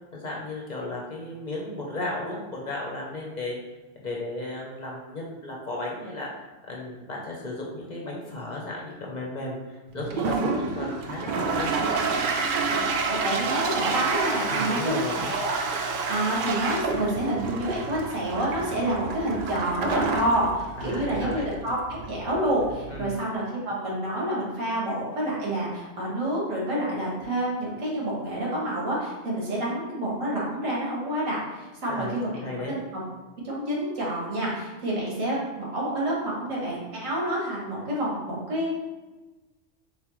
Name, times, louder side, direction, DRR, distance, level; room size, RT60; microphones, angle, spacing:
voice 1, 0.1-3.6 4.0-6.3 6.7-9.6 9.9-11.7 14.5-15.3 20.8-21.4 22.9-23.2 31.9-32.1 32.4-32.8, left 2 dB, 40° left, -2 dB, 0.7 m, -34 dB
Toilet flush, 10.0-23.1, right 4 dB, 65° right, 0.5 m, -29 dB
voice 2, 12.7-15.6 16.1-32.8 33.4-38.7, right 1 dB, 85° right, -4 dB, 1.7 m, -28 dB
4.1 x 3.7 x 3.1 m, 1.2 s
omnidirectional pair, 1.3 m